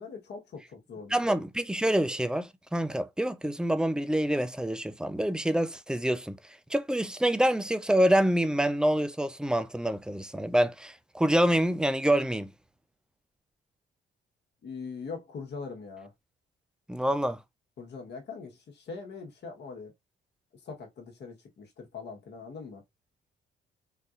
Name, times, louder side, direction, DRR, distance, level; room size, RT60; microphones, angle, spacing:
voice 1, 0.0-1.4 14.6-16.1 17.8-19.9 20.6-22.8, left 5 dB, 60° left, 1.2 m, -42 dB
voice 2, 1.1-6.3 6.7-12.5 16.9-17.4, right 1 dB, 5° right, 0.3 m, -26 dB
3.8 x 2.6 x 2.4 m
cardioid pair, 90°, 20 cm